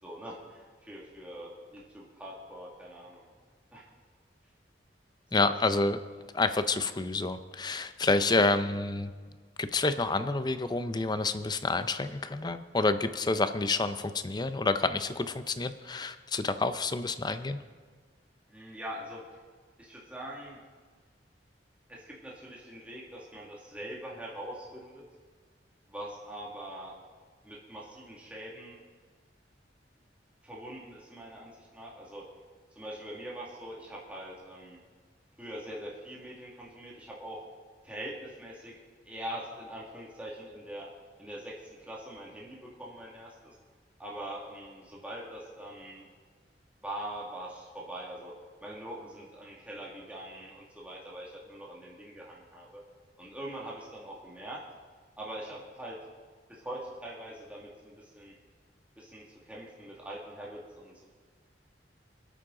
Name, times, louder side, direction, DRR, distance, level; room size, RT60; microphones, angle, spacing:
voice 1, 0.0-3.3 3.7-3.9 18.5-19.2 19.8-20.6 21.9-25.0 25.9-26.9 27.4-28.8 30.4-32.3 32.8-34.8 35.4-37.4 37.8-38.7 39.0-40.9 41.2-43.6 44.0-46.1 46.8-52.8 53.2-54.6 55.2-56.0 56.5-58.3 59.0-61.0, right 1 dB, 5° right, -4 dB, 2.0 m, -43 dB
voice 2, 5.3-6.0 6.3-9.1 9.6-17.6, left 3 dB, 25° left, 11 dB, 0.5 m, -28 dB
26.0 x 8.7 x 3.8 m, 1.5 s
head